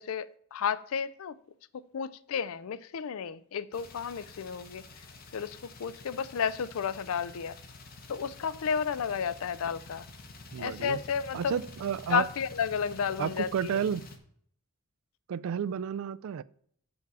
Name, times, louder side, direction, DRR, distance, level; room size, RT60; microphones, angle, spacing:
voice 1, 0.0-1.4 1.9-4.8 5.3-7.6 8.1-10.1 10.6-11.6 12.1-13.8, left 7 dB, 80° left, 0.4 m, -32 dB
sound 1, 3.7-14.2, left 3 dB, 40° left, 0.9 m, -49 dB
voice 2, 10.5-11.0 11.3-12.3 13.2-14.0 15.3-16.4, right 8 dB, 75° right, 0.3 m, -31 dB
7.0 x 4.7 x 6.7 m
head